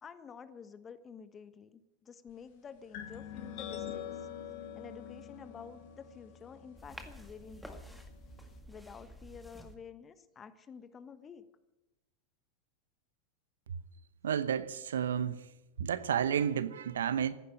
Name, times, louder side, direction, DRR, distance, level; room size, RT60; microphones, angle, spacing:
voice 1, 0.0-4.2 4.7-8.0 8.7-11.4, left 6 dB, 25° left, 12 dB, 1.3 m, -50 dB
sound 1, 2.9-8.6, left 9 dB, 55° left, 2.1 m, -45 dB
sound 2, 6.8-9.8, equal, ahead, 2.0 m, -50 dB
voice 2, 14.2-15.4 15.8-17.3, right 8 dB, 70° right, 15 dB, 0.8 m, -31 dB
15.0 x 11.0 x 8.7 m, 0.99 s
figure-of-eight pair, 90°, 0 cm